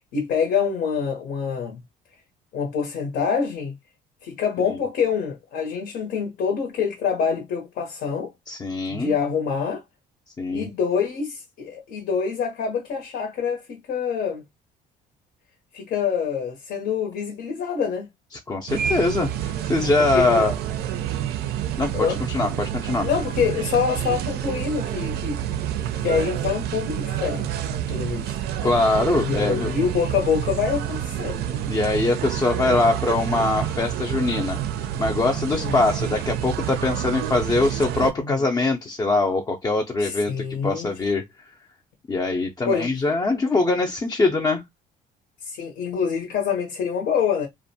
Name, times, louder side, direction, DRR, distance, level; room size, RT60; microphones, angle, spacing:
voice 1, 0.1-1.8 2.5-3.7 4.2-8.3 8.9-9.8 10.5-14.4 15.7-18.1 20.1-20.4 21.9-22.2 23.0-25.4 26.0-28.4 29.2-31.7 35.5-35.7 38.2-38.4 40.0-40.9 42.7-42.9 45.4-47.5, left 6 dB, 75° left, 0.8 m, -26 dB
voice 2, 8.5-9.1 10.4-10.7 18.5-20.5 21.8-23.1 28.6-29.7 31.7-34.6 35.0-40.3 40.6-41.2 42.1-44.6, left 3 dB, 20° left, 0.4 m, -22 dB
sound 1, 18.7-38.1, right 10 dB, 75° right, 0.4 m, -28 dB
2.5 x 2.1 x 2.6 m
cardioid pair, 110°, 17 cm